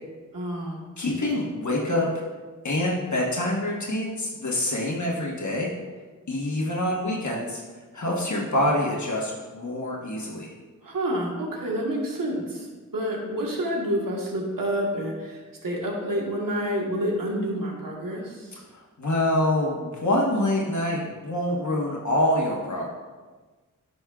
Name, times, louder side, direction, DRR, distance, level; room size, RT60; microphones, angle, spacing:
voice 1, 0.3-0.8 10.8-18.6, equal, 80° right, -1 dB, 1.4 m, -29 dB
voice 2, 1.0-2.1 2.6-5.7 6.3-7.6 7.9-10.5 18.7-22.9, left 1 dB, 60° left, -2 dB, 1.3 m, -26 dB
10.5 x 5.3 x 2.4 m, 1.3 s
wide cardioid pair, 60°, 33 cm